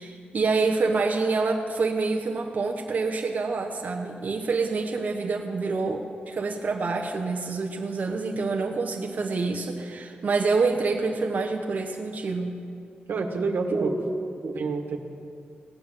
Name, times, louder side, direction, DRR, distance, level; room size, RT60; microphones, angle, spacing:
voice 1, 0.0-12.6 13.7-14.6, right 4 dB, 50° right, 2 dB, 1.0 m, -27 dB
voice 2, 13.1-13.9 14.5-15.0, right 4 dB, 85° right, 3 dB, 1.6 m, -28 dB
17.0 x 10.0 x 7.5 m, 2.4 s
wide cardioid pair, 140°, 3 cm